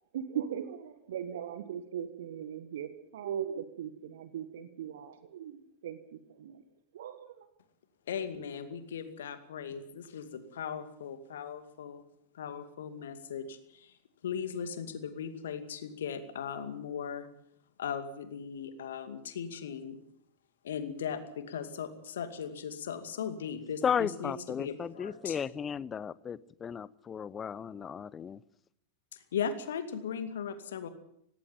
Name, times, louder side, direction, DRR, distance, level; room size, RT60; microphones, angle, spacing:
voice 1, 0.1-6.6 6.9-7.5, right 9 dB, 60° right, 1.5 m, -39 dB
voice 2, 8.1-12.0 12.3-14.0 14.2-17.3 17.8-20.0 20.6-25.5 29.1-30.9, left 7 dB, 60° left, 2.3 m, -38 dB
voice 3, 23.8-28.4, left 7 dB, 20° left, 0.7 m, -34 dB
18.5 x 17.5 x 8.9 m
figure-of-eight pair, 90°, 0 cm